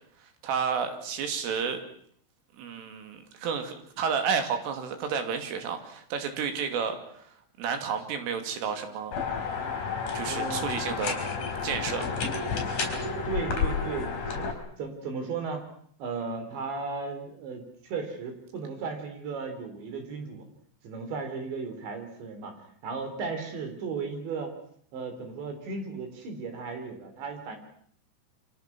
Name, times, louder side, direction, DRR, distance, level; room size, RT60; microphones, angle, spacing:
voice 1, 0.4-1.8 2.6-7.2 7.6-9.2 10.1-11.2 11.6-12.1, right 6 dB, 90° right, 7 dB, 5.2 m, -31 dB
sound 1, 9.1-14.5, left 5 dB, 40° left, 5.7 m, -31 dB
voice 2, 10.3-10.6 13.3-14.5 14.8-15.6 16.0-20.5 20.8-22.5 22.8-24.5 24.9-27.6, right 4 dB, 65° right, 6 dB, 6.1 m, -35 dB
29.0 x 25.5 x 6.1 m, 0.62 s
omnidirectional pair, 5.6 m